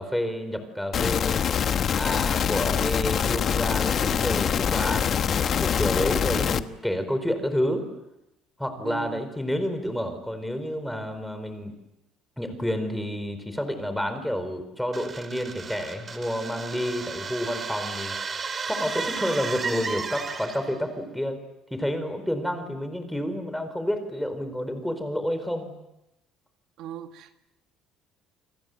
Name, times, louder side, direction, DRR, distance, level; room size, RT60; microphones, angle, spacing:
voice 1, 0.0-1.4 1.9-7.9 8.6-11.7 12.4-18.1 18.6-21.4 21.7-25.7, equal, ahead, 8 dB, 4.5 m, -29 dB
sound 1, 0.9-6.6, left 8 dB, 40° left, 1.2 m, -24 dB
voice 2, 6.1-6.5 8.8-9.3 26.8-27.4, right 11 dB, 65° right, 6 dB, 2.0 m, -39 dB
sound 2, 14.9-20.8, right 5 dB, 25° right, 2.2 m, -34 dB
29.5 x 25.0 x 8.0 m, 0.89 s
cardioid pair, 145°, 0 cm